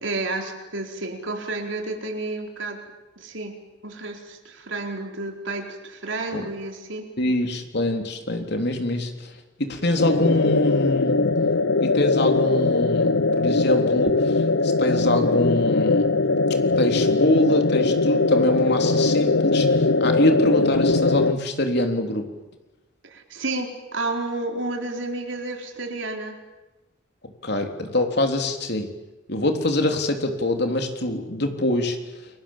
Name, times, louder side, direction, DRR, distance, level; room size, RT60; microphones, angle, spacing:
voice 1, 0.0-2.8 3.2-7.1 23.0-26.4, right 2 dB, 70° right, 3 dB, 4.4 m, -31 dB
voice 2, 7.2-11.2 11.8-16.1 16.6-22.3 27.2-28.9 29.3-32.3, left 1 dB, 55° left, 5 dB, 3.5 m, -24 dB
sound 1, 10.0-21.3, left 3 dB, 80° left, 0.9 m, -21 dB
29.5 x 23.5 x 7.5 m, 1.1 s
head